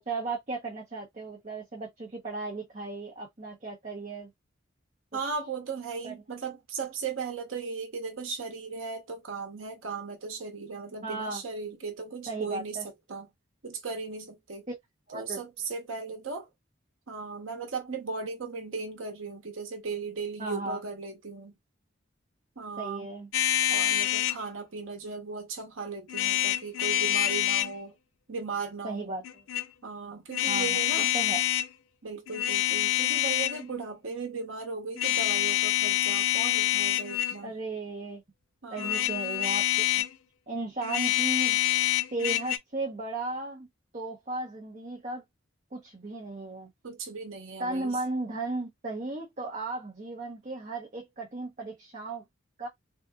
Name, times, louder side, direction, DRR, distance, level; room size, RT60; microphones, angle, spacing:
voice 1, 0.0-4.3 6.0-6.1 11.0-11.4 12.3-12.8 14.7-14.8 15.1-15.4 20.4-20.8 22.8-23.3 28.8-29.4 30.5-30.8 31.1-31.4 37.4-38.2 38.7-40.0 40.5-41.6 42.1-43.7 43.9-45.2 45.7-46.7 47.6-52.2 52.6-52.7, right 3 dB, 35° right, 0.9 m, -35 dB
voice 2, 5.1-12.8 13.1-13.3 13.6-14.7 15.1-16.5 17.1-21.5 22.6-23.1 23.7-27.9 28.3-29.1 29.8-31.1 32.0-37.5 38.6-39.1 46.8-48.0, right 4 dB, 85° right, 0.9 m, -37 dB
sound 1, 23.3-24.4 26.1-27.7 29.2-29.7 30.3-31.7 32.3-33.6 35.0-37.4 38.8-40.2 40.8-42.6, left 14 dB, 90° left, 0.5 m, -26 dB
3.6 x 2.5 x 2.3 m
head